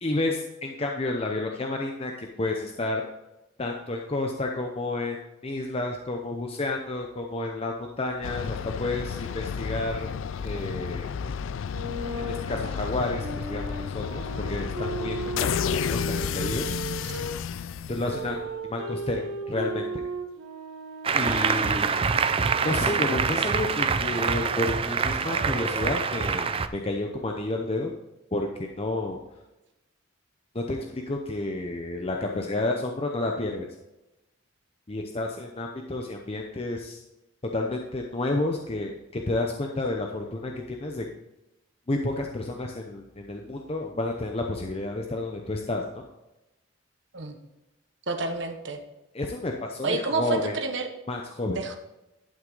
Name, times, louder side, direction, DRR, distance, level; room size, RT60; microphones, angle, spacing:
voice 1, 0.0-3.0 3.6-5.2 5.4-10.1 10.4-11.1 12.2-16.7 17.9-19.9 21.1-21.9 22.6-27.9 28.3-29.2 30.5-33.7 34.9-37.0 37.5-41.1 41.9-45.8 49.1-50.6 51.1-51.6, left 2 dB, 30° left, 2 dB, 0.7 m, -30 dB
sound 1, 8.2-18.5, left 7 dB, 70° left, 0.3 m, -32 dB
sound 2, 11.7-17.3 18.0-23.6, right 2 dB, 80° right, 1.2 m, -36 dB
Applause, 21.0-26.7, right 5 dB, 25° right, 0.4 m, -25 dB
voice 2, 48.1-48.8 49.8-50.9 51.5-51.8, right 3 dB, 60° right, 6 dB, 1.2 m, -29 dB
11.0 x 6.0 x 4.0 m, 0.97 s
head